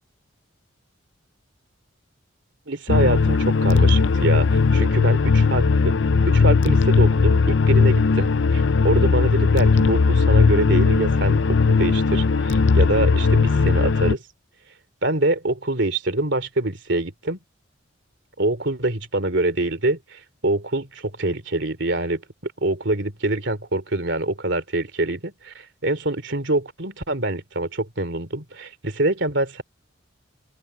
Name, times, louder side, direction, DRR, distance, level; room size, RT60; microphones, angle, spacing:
voice 1, 2.7-5.9 6.3-14.2 15.0-17.4 18.4-29.6, right 2 dB, 60° right, 3.1 m, -25 dB
sound 1, 2.9-14.2, left 4 dB, 60° left, 0.5 m, -18 dB
open air
head